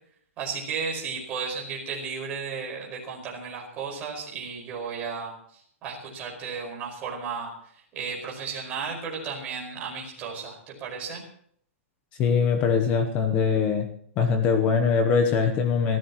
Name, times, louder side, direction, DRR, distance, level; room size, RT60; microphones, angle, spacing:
voice 1, 0.4-11.2, right 5 dB, 20° right, -2 dB, 5.2 m, -34 dB
voice 2, 12.2-13.9 14.2-16.0, left 6 dB, 20° left, 6 dB, 0.9 m, -22 dB
26.5 x 15.0 x 3.1 m, 0.62 s
hypercardioid pair, 180°, 7 cm